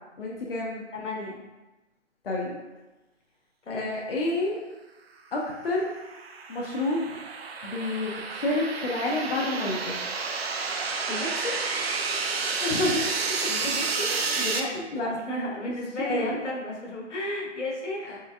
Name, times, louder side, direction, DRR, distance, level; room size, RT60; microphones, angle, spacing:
voice 1, 0.2-0.8 2.2-2.6 3.7-4.6 5.3-5.9 6.5-7.2 7.6-10.0 12.6-13.1 14.1-14.4 14.7-15.1 16.0-16.4, left 2 dB, 50° left, -3 dB, 0.6 m, -29 dB
voice 2, 0.9-1.4 3.7-4.0 10.7-11.6 13.5-14.1 14.4-18.2, left 1 dB, 80° left, -2 dB, 1.1 m, -33 dB
sound 1, 5.6-14.6, right 4 dB, 60° right, 0.5 m, -30 dB
4.5 x 3.2 x 2.3 m, 1.1 s
hypercardioid pair, 170°, 36 cm